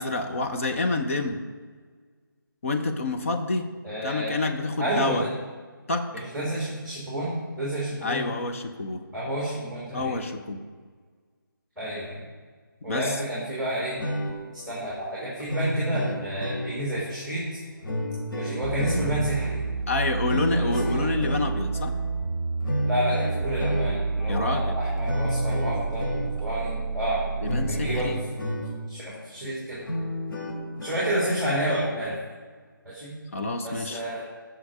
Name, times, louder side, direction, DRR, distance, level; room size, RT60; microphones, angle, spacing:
voice 1, 0.0-1.4 2.6-3.7 4.0-5.3 5.9-6.1 8.0-9.0 9.9-10.6 12.9-13.0 19.9-21.9 24.3-24.8 27.4-28.2 33.3-34.0, left 3 dB, 40° left, 5 dB, 1.0 m, -28 dB
voice 2, 3.8-4.3 4.8-5.3 6.1-8.3 9.1-10.2 11.8-12.3 12.8-14.0 14.5-17.6 18.4-19.7 20.5-21.1 22.8-27.2 27.7-28.2 28.9-29.8 30.8-32.2 32.8-33.2 33.6-34.2, right 1 dB, ahead, -7 dB, 2.6 m, -30 dB
sound 1, 13.8-29.0 29.4-29.5 29.8-32.0, equal, 70° left, 3.1 m, -32 dB
sound 2, 18.6-28.2, right 4 dB, 40° right, 1.0 m, -30 dB
16.0 x 6.2 x 4.9 m, 1.5 s
figure-of-eight pair, 165°, 12 cm